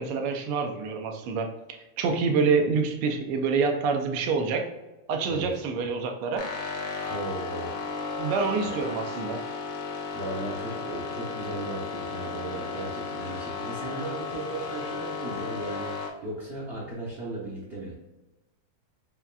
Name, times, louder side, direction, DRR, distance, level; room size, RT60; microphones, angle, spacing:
voice 1, 0.0-4.7 5.1-6.5 8.2-9.4, right 5 dB, 90° right, 3 dB, 1.6 m, -27 dB
sound 1, 6.4-16.1, left 4 dB, 65° left, 1.2 m, -34 dB
voice 2, 7.1-7.7 8.6-8.7 10.1-17.9, right 2 dB, 70° right, -5 dB, 0.6 m, -36 dB
6.9 x 2.4 x 2.2 m, 1.1 s
omnidirectional pair, 2.4 m